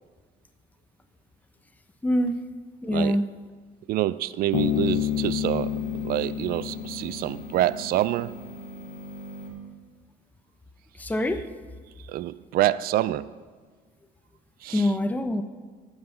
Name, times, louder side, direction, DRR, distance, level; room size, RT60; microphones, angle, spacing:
voice 1, 2.0-2.4 2.8-3.3 11.0-11.5 14.7-15.4, left 1 dB, 10° left, 0.7 m, -24 dB
voice 2, 2.9-3.2 3.9-8.4 12.0-13.3 14.6-14.9, right 14 dB, 65° right, 0.4 m, -27 dB
Bass guitar, 4.5-8.0, left 12 dB, 80° left, 0.7 m, -29 dB
sound 1, 4.5-9.5, right 2 dB, 50° left, 3.8 m, -42 dB
12.5 x 5.6 x 8.1 m
cardioid pair, 110°, 17 cm